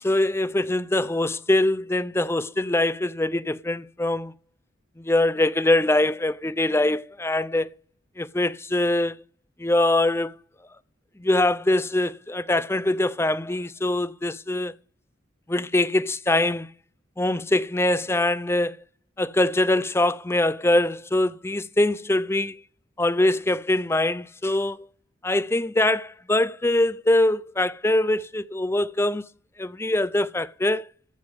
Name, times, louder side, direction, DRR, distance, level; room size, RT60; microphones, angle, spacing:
voice 1, 0.0-4.3 5.0-7.7 8.2-9.2 9.6-10.3 11.2-14.7 15.5-16.7 17.2-18.8 19.2-22.6 23.0-24.9 25.2-29.2 29.6-30.9, left 1 dB, 15° left, 0.5 m, -23 dB
14.5 x 5.3 x 8.0 m
head